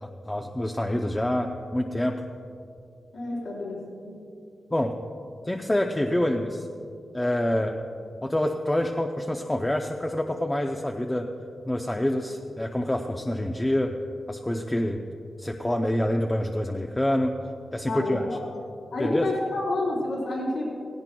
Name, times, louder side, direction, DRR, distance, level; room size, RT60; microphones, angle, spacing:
voice 1, 0.0-2.2 4.7-4.9 5.5-6.7 7.1-7.8 8.2-11.3 11.6-13.9 14.3-15.0 15.4-17.4 17.7-18.3 19.0-19.3, left 1 dB, 10° left, 3 dB, 0.5 m, -26 dB
voice 2, 3.1-4.2 17.9-18.4 18.9-20.7, left 2 dB, 80° left, -5 dB, 3.6 m, -29 dB
17.5 x 16.5 x 2.3 m, 2.5 s
wide cardioid pair, 150°, 0 cm